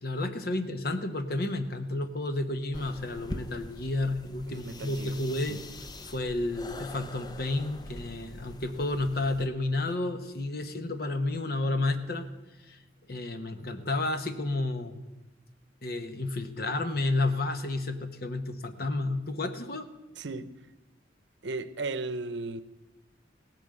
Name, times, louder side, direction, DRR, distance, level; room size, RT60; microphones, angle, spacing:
voice 1, 0.0-5.6 6.1-12.3 12.7-12.8 13.1-15.0 15.8-19.9, left 2 dB, 55° left, 1.1 m, -31 dB
sound 1, 2.7-9.5, left 1 dB, 20° left, 0.6 m, -43 dB
voice 2, 4.5-5.6 20.2-20.5 21.4-22.6, right 3 dB, 75° right, 0.8 m, -36 dB
17.0 x 9.1 x 7.7 m
head